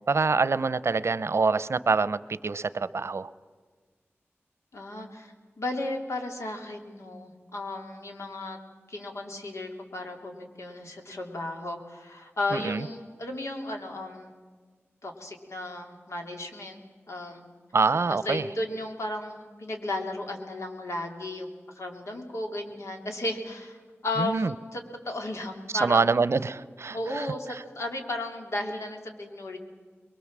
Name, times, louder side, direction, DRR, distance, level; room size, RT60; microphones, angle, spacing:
voice 1, 0.1-3.3 12.5-12.8 17.7-18.4 24.2-24.5 25.7-27.6, right 4 dB, 70° right, 16 dB, 0.7 m, -25 dB
voice 2, 4.7-8.6 8.9-14.3 15.0-16.8 17.1-17.4 18.1-21.5 21.7-23.8 24.0-26.0 26.9-29.6, left 2 dB, 90° left, 3 dB, 3.2 m, -34 dB
24.0 x 22.5 x 7.5 m, 1.5 s
wide cardioid pair, 85°, 5 cm